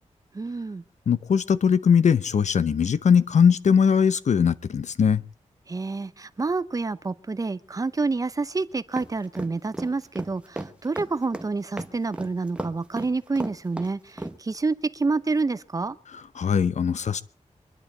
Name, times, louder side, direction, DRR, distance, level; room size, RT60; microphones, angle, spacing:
voice 1, 0.3-0.8 5.7-16.0, right 3 dB, 25° right, 15 dB, 0.7 m, -28 dB
voice 2, 1.1-5.2 16.4-17.2, left 7 dB, 65° left, 15 dB, 0.8 m, -20 dB
sound 1, 9.0-14.4, right 1 dB, 10° right, 1.2 m, -34 dB
24.0 x 11.0 x 4.4 m, 0.35 s
wide cardioid pair, 160°, 13 cm